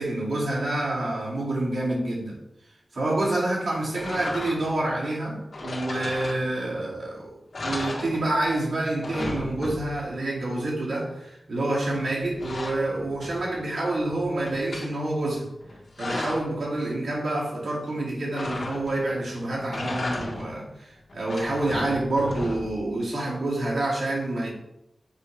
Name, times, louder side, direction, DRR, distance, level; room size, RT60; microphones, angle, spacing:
voice 1, 0.0-2.4 2.9-7.3 7.6-15.5 16.0-24.5, right 2 dB, 75° right, -5 dB, 2.3 m, -27 dB
sound 1, 4.0-4.8 5.5-6.8 7.1-7.2 7.5-8.6 8.9-10.1 11.8-13.6 14.0-14.9 15.6-16.6 18.3-19.1 19.6-20.6 21.1-22.9, left 2 dB, 70° left, 1.7 m, -35 dB
7.3 x 3.3 x 5.0 m, 0.84 s
wide cardioid pair, 85°, 0 cm